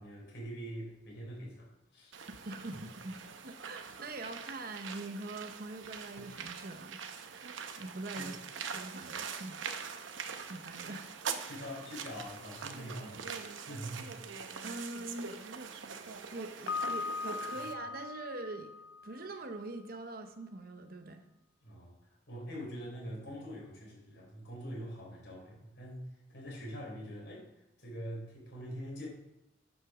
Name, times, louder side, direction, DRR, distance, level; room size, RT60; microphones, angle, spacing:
voice 1, 0.0-2.2 8.2-8.3 11.5-14.1 21.6-27.5 27.8-29.1, equal, 60° left, -3 dB, 3.9 m, -44 dB
sound 1, 2.1-17.7, right 6 dB, 85° right, 0.8 m, -43 dB
voice 2, 2.4-8.3 8.6-9.6 10.5-11.1 14.6-15.4 16.3-18.7 19.0-21.3, right 2 dB, 50° right, 7 dB, 0.8 m, -43 dB
Piano, 16.7-19.6, left 4 dB, 85° left, 0.4 m, -39 dB
9.8 x 5.3 x 6.1 m, 0.91 s
head